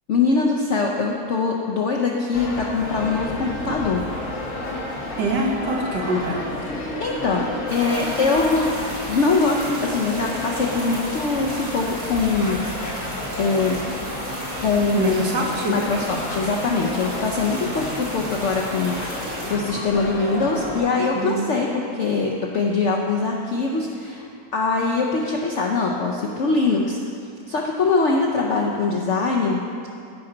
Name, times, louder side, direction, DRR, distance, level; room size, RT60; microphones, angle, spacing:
voice 1, 0.1-4.0 7.0-8.7 9.1-12.6 13.4-13.8 14.6-15.2 15.7-24.2 24.5-27.0 27.5-29.6, left 4 dB, 70° left, -1 dB, 0.7 m, -22 dB
sound 1, 2.3-20.8, left 1 dB, 50° left, 1.4 m, -32 dB
voice 2, 5.2-6.5 14.9-15.7 21.1-21.4, right 2 dB, 70° right, -1 dB, 1.7 m, -24 dB
sound 2, 7.7-19.5, right 1 dB, 90° right, 3.2 m, -34 dB
14.0 x 5.5 x 3.9 m, 2.6 s
omnidirectional pair, 1.9 m